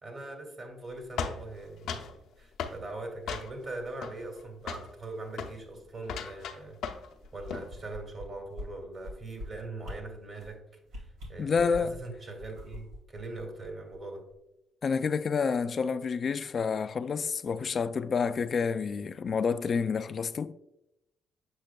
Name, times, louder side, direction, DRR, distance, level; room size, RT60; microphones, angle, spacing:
voice 1, 0.0-6.8 7.3-10.6 11.0-14.2, right 2 dB, 40° right, 1.9 m, -41 dB
sound 1, 1.2-2.1 2.6-2.8 3.3-3.7 4.0-4.4 4.7-4.9 5.3-5.6 6.0-7.1 7.4-7.7, left 6 dB, 80° left, 0.7 m, -36 dB
sound 2, 7.2-8.2 8.5-8.7 9.0-9.5 9.8-10.0 10.4-10.5 10.9-12.0 12.4-14.0 14.3-14.4, left 1 dB, 90° right, 2.2 m, -42 dB
voice 2, 11.4-11.9 14.8-20.5, left 5 dB, 45° left, 0.3 m, -29 dB
7.6 x 6.1 x 2.3 m
cardioid pair, 90°, 0 cm